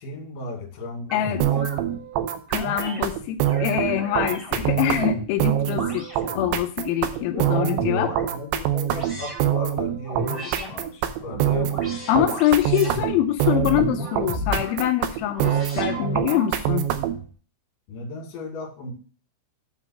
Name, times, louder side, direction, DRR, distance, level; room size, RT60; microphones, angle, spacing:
voice 1, 0.0-1.2 7.5-11.8 17.9-18.9, left 3 dB, 60° left, 0 dB, 3.3 m, -36 dB
voice 2, 1.1-1.4 2.5-6.1 6.3-8.1 12.1-16.9, left 12 dB, 85° left, 5 dB, 2.2 m, -24 dB
sound 1, 1.1-1.8 2.5-3.0 3.4-5.3 5.7-6.6 7.1-8.2 8.9-9.5 10.0-10.7 11.2-13.0 13.5-14.8 15.3-16.5, equal, 15° right, 1.9 m, -33 dB
sound 2, 1.4-17.3, right 11 dB, 90° right, 3.0 m, -25 dB
8.4 x 3.8 x 6.0 m, 0.40 s
omnidirectional pair, 5.0 m